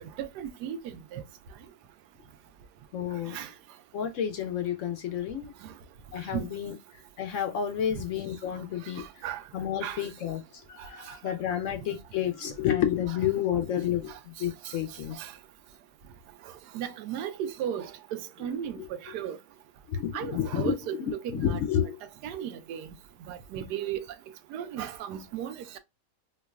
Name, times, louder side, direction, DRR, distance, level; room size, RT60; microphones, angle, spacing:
voice 1, 0.0-1.2 3.3-3.5 5.6-5.7 6.3-6.5 8.8-9.4 9.8-10.1 11.1-11.2 14.1-14.2 14.6-14.7 15.1-15.3 16.7-19.4 20.1-21.6 22.2-22.9 23.3-24.0 24.5-25.8, right 9 dB, 75° right, 1.1 m, -36 dB
voice 2, 2.9-3.4 3.9-5.5 6.1-6.7 7.2-9.2 9.5-15.2 18.8-18.9 19.9-20.7 21.3-22.0, left 10 dB, 70° left, 0.7 m, -30 dB
4.6 x 2.3 x 2.3 m
omnidirectional pair, 1.8 m